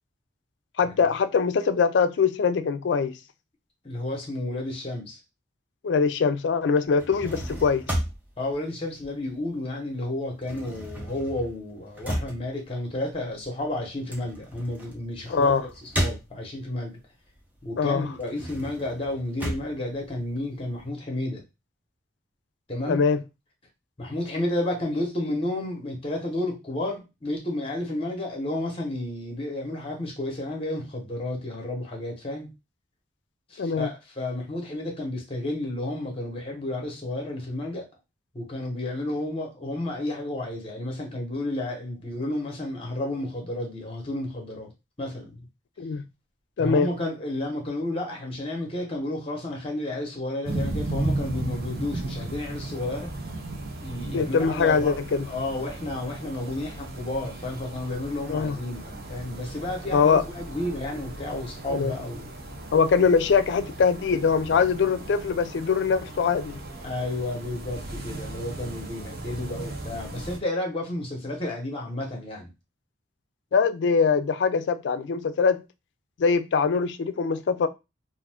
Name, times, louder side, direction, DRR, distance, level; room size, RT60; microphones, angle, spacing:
voice 1, 0.8-3.2 5.8-7.8 15.3-15.7 17.8-18.1 22.9-23.2 33.6-33.9 45.8-46.0 46.6-46.9 54.1-55.3 58.3-58.6 59.9-60.2 61.7-61.9 62.7-66.6 73.5-75.6 76.2-77.7, left 5 dB, 75° left, 0.4 m, -22 dB
voice 2, 3.8-5.2 8.4-17.0 17.6-21.4 22.7-23.0 24.0-32.5 33.5-37.9 38.3-44.7 45.0-45.4 46.6-53.1 53.8-55.0 55.3-62.3 66.8-72.5, left 1 dB, 30° left, 0.9 m, -31 dB
sound 1, 6.8-9.7 10.0-16.8 17.3-20.8, equal, 10° right, 0.6 m, -34 dB
sound 2, 50.4-70.4, right 2 dB, 55° right, 0.6 m, -36 dB
2.5 x 2.5 x 3.4 m
head